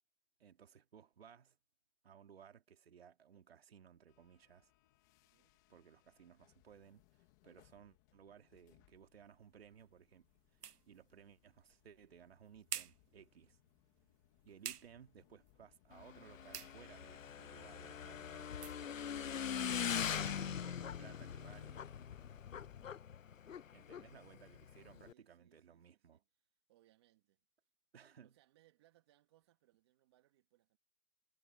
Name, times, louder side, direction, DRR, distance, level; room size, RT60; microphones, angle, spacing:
voice 1, 0.4-1.6 2.0-4.7 5.7-10.3 10.5-10.6 10.9-13.6 14.4-18.5 19.6-21.8 23.7-26.2 27.9-28.4, right 8 dB, 40° right, 2.7 m, -60 dB
sound 1, 4.1-23.0, left 18 dB, 10° left, 2.0 m, -69 dB
voice 2, 5.2-5.6 24.9-27.4 28.2-30.8, right 15 dB, 15° right, 2.1 m, -73 dB
sound 2, 8.9-20.4, right 8 dB, 70° right, 1.0 m, -54 dB
Motorcycle / Engine, 15.9-25.1, left 8 dB, 55° left, 0.5 m, -42 dB
hypercardioid pair, 170°, 49 cm